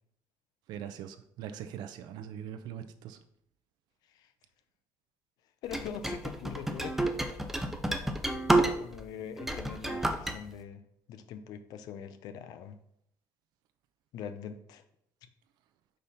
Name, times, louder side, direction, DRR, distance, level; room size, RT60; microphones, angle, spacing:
voice 1, 0.7-3.2, right 9 dB, 70° right, 9 dB, 0.5 m, -42 dB
voice 2, 5.6-7.0 8.6-10.8 11.1-12.8 14.1-14.8, left 8 dB, 65° left, 10 dB, 0.6 m, -43 dB
sound 1, 5.7-9.0 9.4-10.4, right 1 dB, 5° right, 0.4 m, -29 dB
5.1 x 4.2 x 5.7 m, 0.73 s
cardioid pair, 180°, 7 cm